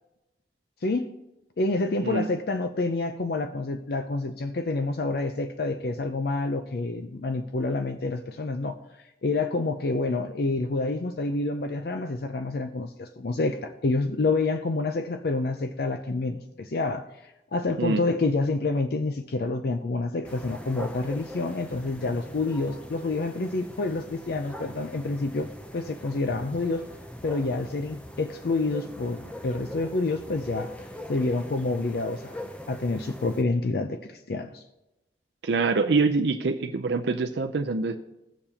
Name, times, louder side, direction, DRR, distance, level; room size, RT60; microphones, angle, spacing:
voice 1, 0.8-1.1 1.6-8.8 9.2-26.9 27.2-30.7 31.1-32.4 32.7-34.6, left 3 dB, 55° left, 0.5 m, -28 dB
sound 1, 20.2-33.4, equal, 5° left, 0.6 m, -42 dB
voice 2, 35.4-38.0, right 4 dB, 70° right, 0.5 m, -25 dB
18.0 x 6.8 x 2.8 m
head